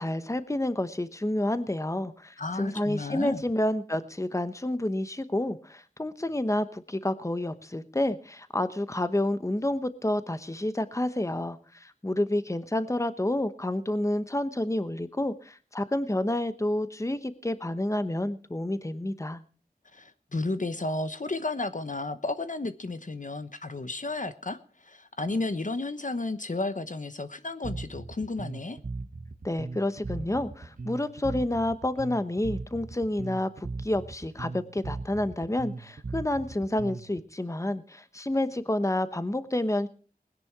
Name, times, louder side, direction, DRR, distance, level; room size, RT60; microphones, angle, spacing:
voice 1, 0.0-19.4 29.4-39.9, left 1 dB, 20° left, 12 dB, 1.0 m, -29 dB
voice 2, 2.4-3.4 19.9-28.8, left 2 dB, 55° left, 11 dB, 1.0 m, -33 dB
Bass guitar, 27.6-37.2, right 3 dB, 60° right, 0.9 m, -38 dB
20.0 x 10.5 x 4.7 m, 0.40 s
wide cardioid pair, 45°, 16 cm